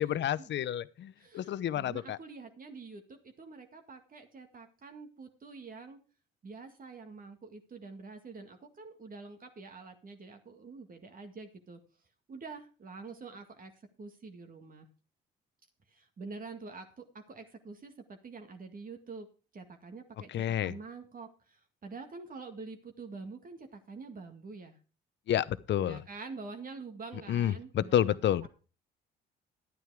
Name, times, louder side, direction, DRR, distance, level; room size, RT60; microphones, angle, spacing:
voice 1, 0.0-2.2 20.3-20.7 25.3-26.0 27.3-28.5, left 11 dB, 60° left, 0.8 m, -30 dB
voice 2, 1.2-6.0 6.4-11.8 12.3-13.7 14.0-14.9 15.9-19.3 19.5-20.3 20.6-24.7 25.8-28.0, right 4 dB, 40° right, 2.0 m, -46 dB
11.0 x 9.4 x 4.8 m
supercardioid pair, 70°, 21 cm